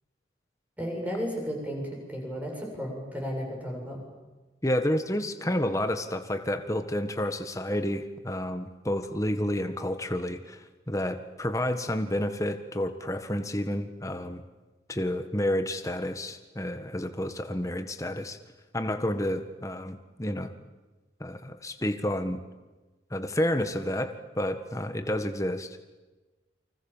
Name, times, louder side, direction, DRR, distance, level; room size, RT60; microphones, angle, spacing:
voice 1, 0.8-4.0, equal, 10° right, 0 dB, 7.9 m, -34 dB
voice 2, 4.6-14.4 14.9-18.4 18.7-20.5 21.2-22.4 23.1-25.8, left 1 dB, 15° left, 8 dB, 1.6 m, -30 dB
29.5 x 25.5 x 7.4 m, 1.2 s
head